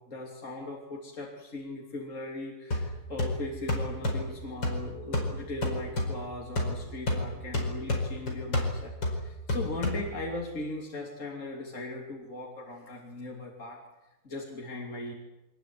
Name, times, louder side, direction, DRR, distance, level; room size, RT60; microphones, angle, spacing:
voice 1, 0.1-13.8 14.2-15.1, left 2 dB, 40° left, -1 dB, 3.5 m, -38 dB
sound 1, 2.7-10.4, left 1 dB, 90° left, 5.7 m, -32 dB
24.5 x 20.0 x 9.6 m, 1.0 s
omnidirectional pair, 2.0 m